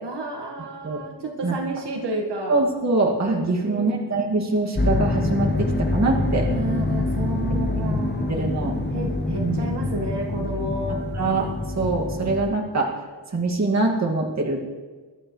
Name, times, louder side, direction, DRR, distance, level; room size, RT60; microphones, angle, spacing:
voice 1, 0.0-2.6 3.6-4.2 6.5-8.4 8.9-11.0, right 1 dB, 70° right, 0 dB, 1.8 m, -31 dB
voice 2, 2.5-6.5 7.8-8.8 9.4-9.9 11.1-11.5 11.8-12.9 13.3-14.6, right 3 dB, 40° right, -1 dB, 2.2 m, -24 dB
sound 1, 4.8-12.5, left 2 dB, 25° left, 1.1 m, -25 dB
22.5 x 12.0 x 3.2 m, 1.4 s
wide cardioid pair, 150°, 44 cm